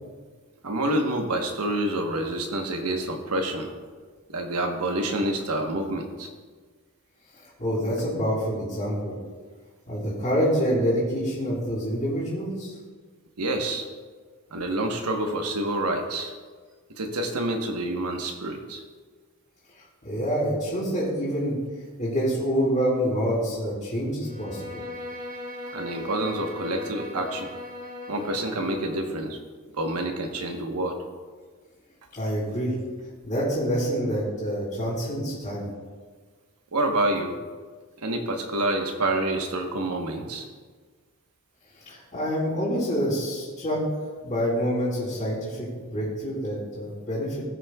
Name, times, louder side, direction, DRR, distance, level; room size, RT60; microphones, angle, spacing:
voice 1, 0.6-3.7 4.3-6.3 13.4-13.9 14.5-16.3 17.0-18.8 25.7-27.5 28.1-29.4 29.7-31.0 36.7-37.4 38.0-40.4, right 1 dB, 80° right, 3 dB, 1.1 m, -27 dB
voice 2, 7.6-9.2 9.9-12.7 20.0-21.6 22.0-24.8 32.1-32.8 33.2-35.7 41.9-43.8 44.2-47.4, equal, 35° left, -10 dB, 2.9 m, -27 dB
Bowed string instrument, 24.2-29.1, left 2 dB, 40° right, 1.2 m, -38 dB
18.0 x 6.3 x 2.3 m, 1.5 s
head